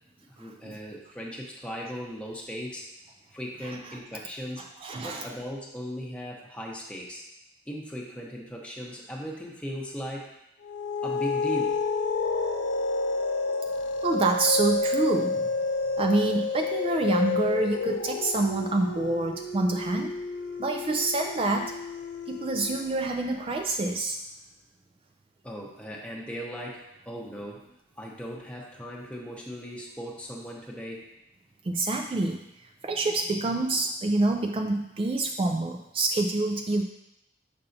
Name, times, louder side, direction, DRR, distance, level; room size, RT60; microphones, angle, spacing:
voice 1, 0.3-2.9 3.3-4.6 5.0-7.2 7.7-10.3 11.0-11.8 25.4-27.7 28.0-31.1, equal, 5° left, -2 dB, 0.9 m, -38 dB
voice 2, 4.8-5.3 14.0-15.4 16.0-20.1 20.6-21.7 22.3-24.2 31.7-32.4 32.8-36.8, right 2 dB, 30° right, 3 dB, 0.3 m, -27 dB
sound 1, 10.6-23.5, left 3 dB, 85° left, 0.5 m, -30 dB
6.7 x 5.5 x 2.7 m, 0.85 s
head